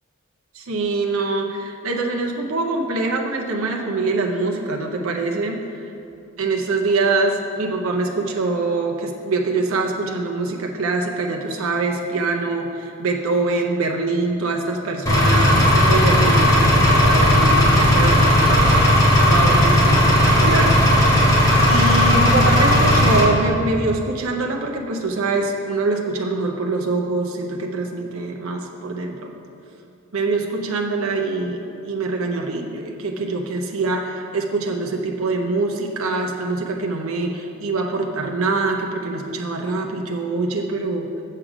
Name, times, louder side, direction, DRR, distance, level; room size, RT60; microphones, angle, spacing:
voice 1, 0.5-5.6 6.4-21.2 21.7-29.3 30.1-41.1, right 3 dB, 75° right, 1 dB, 0.7 m, -24 dB
Engine, 15.1-23.2, equal, 15° left, 1.7 m, -15 dB
7.5 x 6.4 x 4.9 m, 2.8 s
head